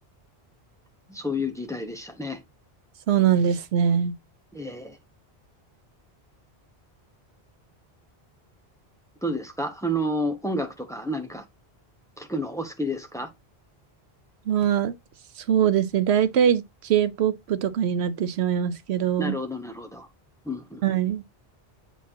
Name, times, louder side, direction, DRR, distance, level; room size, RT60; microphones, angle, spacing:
voice 1, 1.1-2.4 4.5-5.0 9.2-11.4 12.2-13.3 19.2-20.1 20.4-20.8, equal, 5° left, 0.9 m, -30 dB
voice 2, 3.1-4.1 14.5-14.9 15.5-19.4 20.8-21.2, right 9 dB, 85° right, 1.0 m, -22 dB
8.1 x 4.4 x 2.8 m
omnidirectional pair, 1.1 m